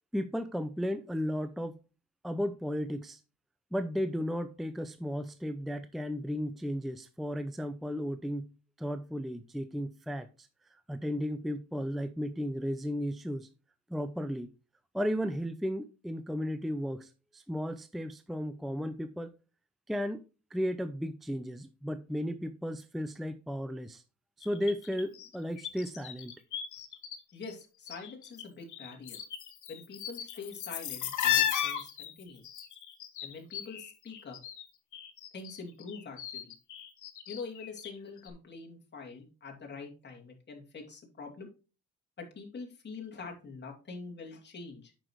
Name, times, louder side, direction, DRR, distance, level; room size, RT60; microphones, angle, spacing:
voice 1, 0.1-1.8 2.2-3.2 3.7-8.5 8.8-13.5 13.9-14.5 14.9-19.3 19.9-20.2 20.5-24.0 24.4-26.3, equal, ahead, 11 dB, 0.5 m, -34 dB
sound 1, 24.4-27.2 27.4-28.4 28.7-34.6 34.9-38.0 38.2-38.3, left 10 dB, 75° left, 1.5 m, -35 dB
voice 2, 27.3-29.2 29.7-32.4 33.2-34.4 35.3-36.5 37.3-41.5 42.2-44.9, left 4 dB, 35° left, 0 dB, 2.6 m, -45 dB
8.7 x 6.2 x 3.1 m, 0.33 s
cardioid pair, 90°, 30 cm